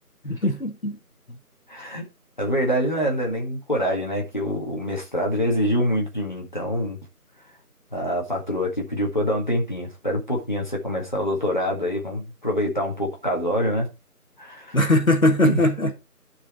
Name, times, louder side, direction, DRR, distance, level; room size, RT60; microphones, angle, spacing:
voice 1, 0.2-1.0 1.3-1.4 14.7-15.9, left 1 dB, 60° left, 1.7 m, -20 dB
voice 2, 1.7-2.0 2.4-7.0 7.9-13.9 14.4-14.8 15.4-15.6, equal, 30° left, 1.8 m, -25 dB
10.0 x 4.9 x 4.5 m
figure-of-eight pair, 175°, 46 cm